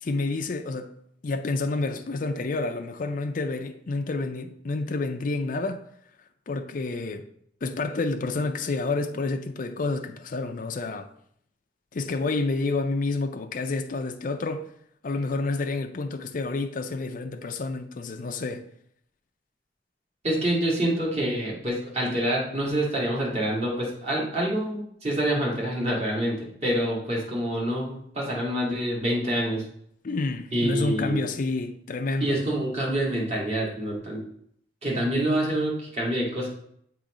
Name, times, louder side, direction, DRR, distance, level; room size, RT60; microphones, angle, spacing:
voice 1, 0.0-0.9 1.2-5.8 6.5-7.3 7.6-11.1 11.9-14.7 15.0-18.6 30.0-32.4, left 3 dB, 50° left, 0.5 m, -29 dB
voice 2, 20.2-26.4 26.6-29.6 30.5-31.3 32.2-34.2 34.8-36.5, right 1 dB, 40° right, 2.0 m, -26 dB
7.4 x 3.1 x 4.9 m
head